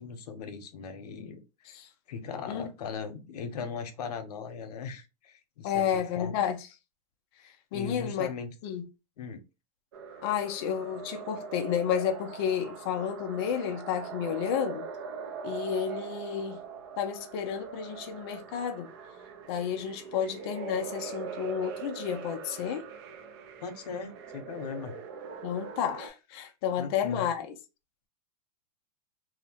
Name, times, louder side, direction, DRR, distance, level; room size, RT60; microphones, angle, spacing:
voice 1, 0.0-1.8 2.1-6.3 7.4-8.5 9.2-9.4 23.6-24.9 26.8-27.3, left 6 dB, 90° left, 0.7 m, -39 dB
voice 2, 5.6-6.7 7.7-8.3 8.6-8.9 10.2-14.9 15.4-16.6 17.0-18.9 19.5-22.9 25.4-27.6, left 8 dB, 40° left, 0.4 m, -31 dB
sound 1, 9.9-26.1, right 6 dB, 40° right, 0.4 m, -42 dB
2.7 x 2.1 x 2.7 m
supercardioid pair, 165°, 20 cm